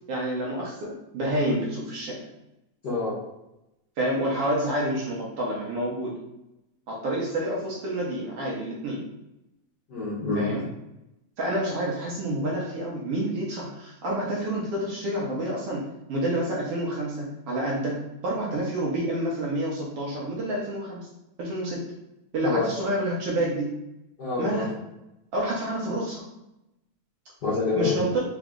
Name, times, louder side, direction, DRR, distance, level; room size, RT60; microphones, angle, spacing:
voice 1, 0.1-2.2 4.0-6.1 6.9-9.0 10.3-10.7 11.4-21.1 21.4-21.8 22.3-23.7 24.4-24.7 25.3-26.2 27.8-28.2, right 1 dB, 65° right, -4 dB, 1.6 m, -28 dB
voice 2, 2.8-3.1 9.9-10.5 22.4-22.7 24.2-24.7 27.4-28.0, left 3 dB, 55° left, -8 dB, 1.2 m, -27 dB
4.7 x 3.0 x 3.7 m, 0.91 s
omnidirectional pair, 3.3 m